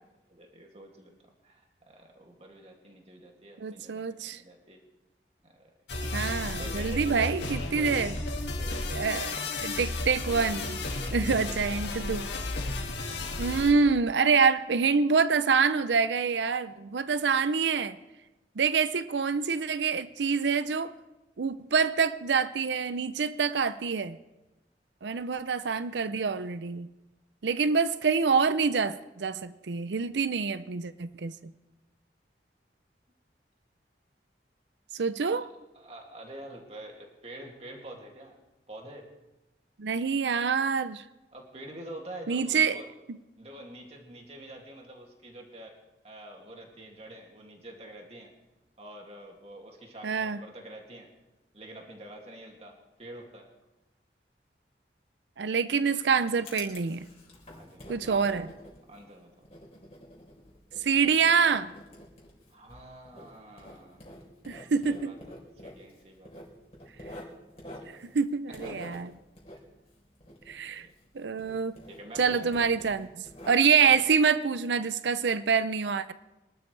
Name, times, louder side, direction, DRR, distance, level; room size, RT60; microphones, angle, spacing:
voice 1, 0.3-1.1 1.4-4.8 5.4-5.6 6.0-7.4 7.7-8.1 8.6-9.5 11.0-11.6 12.9-13.0 35.7-38.3 38.7-39.1 41.3-42.9 43.4-45.8 46.0-48.3 48.8-51.1 51.5-53.5 57.6-58.5 58.9-59.5 62.5-64.2 64.8-65.2 65.6-66.3 67.8-68.0 68.5-69.0 70.7-70.9 71.9-72.5 73.9-74.0, right 1 dB, 35° right, 2.4 m, -46 dB
voice 2, 3.6-4.4 6.1-8.1 9.0-9.4 9.6-10.8 11.1-12.3 13.4-18.0 18.6-20.9 21.4-24.2 25.0-26.9 27.4-31.5 34.9-35.5 39.8-41.0 42.3-42.8 50.0-50.4 55.4-57.1 57.9-58.5 60.8-61.7 64.5-65.1 68.1-69.1 70.5-70.9 71.1-71.8 72.2-76.1, right 5 dB, 90° right, 0.6 m, -26 dB
sound 1, 5.9-13.7, left 2 dB, 85° left, 2.2 m, -33 dB
Writing, 55.8-71.1 71.4-73.9, left 1 dB, 35° left, 3.8 m, -48 dB
24.0 x 12.5 x 3.3 m
head